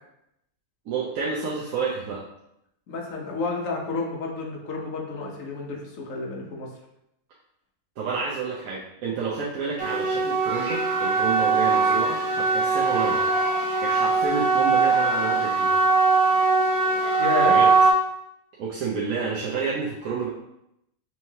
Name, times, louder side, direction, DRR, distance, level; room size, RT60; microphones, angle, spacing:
voice 1, 0.9-2.2 8.0-13.3 13.8-15.8 17.4-17.7 18.6-20.3, right 5 dB, 65° right, -5 dB, 1.1 m, -29 dB
voice 2, 2.9-6.7 17.2-17.6, left 3 dB, 60° left, -1 dB, 1.2 m, -30 dB
sound 1, 9.8-17.9, right 4 dB, 50° right, 1.6 m, -21 dB
5.5 x 3.0 x 2.8 m, 0.82 s
omnidirectional pair, 1.7 m